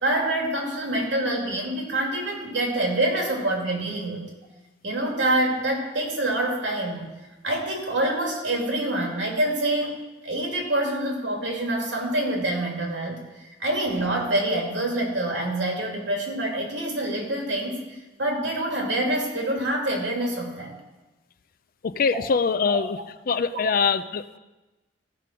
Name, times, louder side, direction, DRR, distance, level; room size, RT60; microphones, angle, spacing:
voice 1, 0.0-4.3 4.8-7.1 7.4-13.2 13.6-20.8 22.7-22.8 23.5-23.7, right 1 dB, 75° right, 0 dB, 2.5 m, -26 dB
voice 2, 21.8-23.0 23.3-24.4, left 5 dB, 50° left, 13 dB, 0.4 m, -23 dB
14.5 x 4.9 x 5.9 m, 1.1 s
head